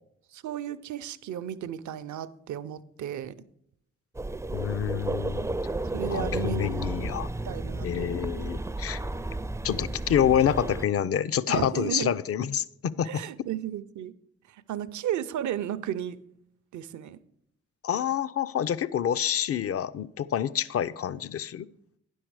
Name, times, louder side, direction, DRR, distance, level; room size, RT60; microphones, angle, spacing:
voice 1, 0.3-3.3 5.9-6.9 7.4-8.2 11.5-12.2 13.0-14.1 14.5-16.2 16.7-17.2, right 10 dB, 65° right, 0.5 m, -34 dB
sound 1, 4.1-10.9, right 2 dB, 10° right, 0.4 m, -33 dB
voice 2, 4.5-5.5 6.1-7.3 7.8-9.0 9.6-13.2 17.8-21.7, left 9 dB, 50° left, 0.5 m, -27 dB
10.0 x 6.3 x 4.7 m
supercardioid pair, 45°, 31 cm